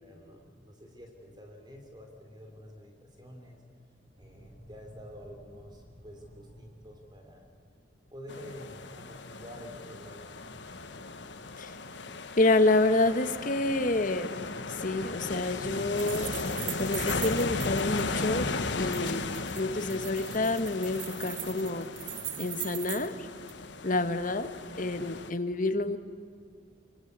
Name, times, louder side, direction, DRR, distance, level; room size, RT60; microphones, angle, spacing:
voice 1, 0.0-3.6 4.2-7.4 8.1-10.9, equal, 25° right, 3 dB, 3.4 m, -49 dB
sound 1, 4.1-8.2, equal, 65° right, 6.1 m, -54 dB
sound 2, 8.3-25.3, left 3 dB, 70° left, 1.4 m, -36 dB
voice 2, 12.4-14.4 14.7-16.3 16.8-18.5 18.8-21.9 22.4-23.3 23.8-26.0, left 2 dB, 45° left, 9 dB, 1.4 m, -28 dB
sound 3, 16.0-18.0 18.9-23.1 23.5-23.6, right 13 dB, 90° right, 1.3 m, -40 dB
25.5 x 24.5 x 8.2 m, 2.2 s
head